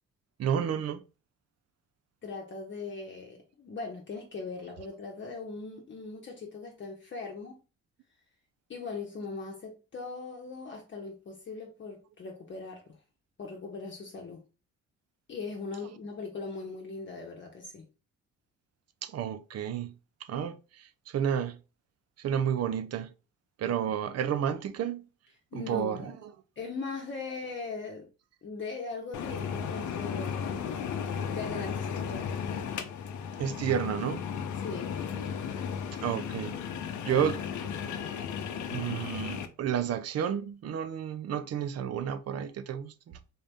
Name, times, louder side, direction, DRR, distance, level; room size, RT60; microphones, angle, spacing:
voice 1, 0.4-1.0 19.0-20.0 20.3-21.6 22.2-23.1 23.6-25.1 25.5-26.1 33.4-34.2 36.0-36.6 37.1-37.4 38.7-43.2, right 8 dB, 55° right, 0.5 m, -31 dB
voice 2, 2.2-7.6 8.7-13.0 13.4-14.4 15.3-17.9 25.5-26.2 26.6-28.1 28.4-30.6 31.3-32.7 34.6-35.0 37.0-37.3, left 4 dB, 40° left, 0.9 m, -40 dB
sound 1, 29.1-39.5, left 7 dB, 75° left, 0.7 m, -35 dB
3.8 x 2.6 x 3.4 m
cardioid pair, 90°, 30 cm